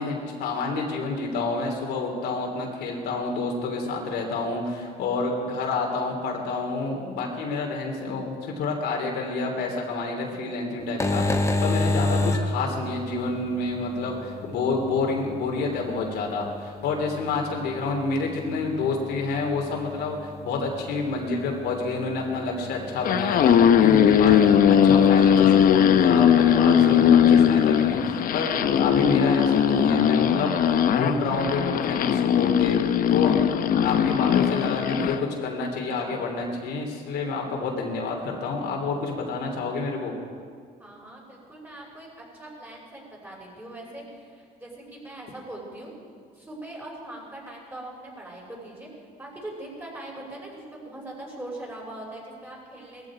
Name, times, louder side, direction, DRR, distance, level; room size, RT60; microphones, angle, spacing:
voice 1, 0.0-32.8 33.1-33.3 33.7-35.1 35.4-40.1, left 3 dB, 80° left, 1 dB, 3.0 m, -28 dB
sound 1, 10.8-28.1, left 2 dB, 15° left, 1.3 m, -33 dB
sound 2, 22.9-35.2, left 9 dB, 55° left, 0.7 m, -19 dB
voice 2, 40.8-45.9 46.4-48.9 49.2-53.1, right 1 dB, 10° right, -3 dB, 5.8 m, -41 dB
19.0 x 14.5 x 4.9 m, 2.1 s
cardioid pair, 110°, 17 cm